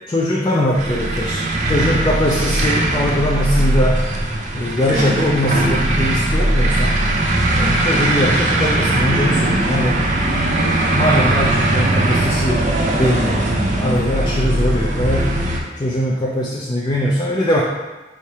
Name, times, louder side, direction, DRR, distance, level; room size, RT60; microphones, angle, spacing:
voice 1, 0.0-4.0 4.5-7.0 7.5-10.0 10.6-15.3 15.8-17.6, left 1 dB, 25° left, -3 dB, 0.3 m, -21 dB
sound 1, 0.7-15.6, right 1 dB, 45° right, 0.5 m, -19 dB
4.4 x 3.2 x 2.8 m, 1.2 s
head